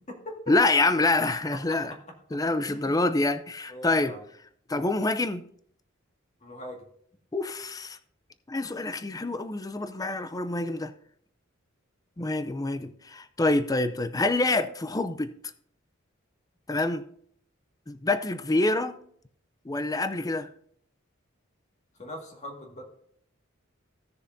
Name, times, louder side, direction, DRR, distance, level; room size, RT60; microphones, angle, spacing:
voice 1, 0.5-1.9 2.3-4.1 4.7-5.4 7.3-8.0 8.5-10.9 12.2-15.3 16.7-17.0 17.9-19.0 19.7-20.5, left 2 dB, 20° left, 0.5 m, -26 dB
voice 2, 1.5-1.8 2.7-3.0 3.7-4.2 6.4-6.8 22.0-22.8, left 1 dB, 35° left, 2.0 m, -41 dB
16.0 x 6.7 x 2.7 m
head